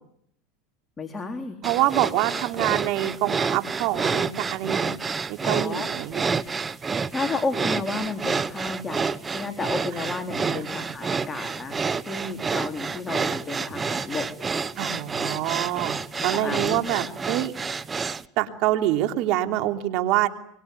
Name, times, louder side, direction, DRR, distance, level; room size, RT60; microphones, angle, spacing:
voice 1, 1.0-1.6 5.4-5.9 6.4-6.5 7.1-11.8 12.1-14.3 15.2-15.3 16.2-16.8, left 3 dB, 20° left, 5 dB, 3.7 m, -32 dB
sound 1, 1.6-18.2, right 5 dB, 20° right, 1.1 m, -29 dB
voice 2, 1.6-4.9 5.3-6.3 9.9-10.1 10.3-10.6 14.8-16.0 16.2-17.5 18.4-20.3, right 14 dB, 60° right, 6 dB, 3.2 m, -26 dB
25.0 x 24.0 x 9.5 m, 0.71 s
supercardioid pair, 115°, 0 cm